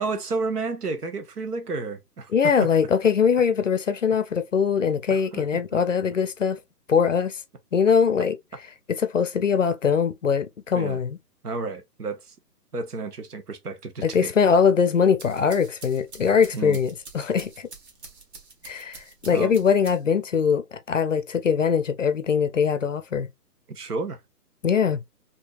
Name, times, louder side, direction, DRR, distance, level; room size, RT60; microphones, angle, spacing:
voice 1, 0.0-2.7 5.1-5.4 5.7-5.8 10.7-11.0 11.4-12.3 12.7-14.3 16.5-16.8 19.3-19.6 23.7-24.2, right 3 dB, 70° right, 1.1 m, -31 dB
voice 2, 2.3-6.6 6.9-7.4 7.7-8.4 9.0-11.2 14.0-17.7 18.6-23.3 24.6-25.0, left 6 dB, 50° left, 0.5 m, -22 dB
sound 1, 15.0-20.3, right 3 dB, 40° right, 1.4 m, -46 dB
4.5 x 2.7 x 2.3 m
hypercardioid pair, 170°, 49 cm